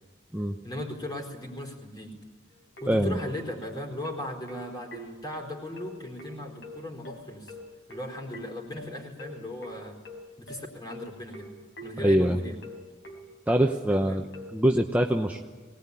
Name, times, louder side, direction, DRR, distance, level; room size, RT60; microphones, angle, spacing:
voice 1, 0.6-2.1 2.8-7.5 7.9-10.0 10.4-11.5 11.8-12.6 14.1-14.2, left 1 dB, 20° left, 2 dB, 4.3 m, -37 dB
sound 1, 2.5-14.5, left 1 dB, 70° left, 4.1 m, -44 dB
voice 2, 2.9-3.2 12.0-12.4 13.5-14.2 14.5-15.4, right 1 dB, 10° right, 2 dB, 0.9 m, -23 dB
23.0 x 19.0 x 9.9 m, 1.5 s
head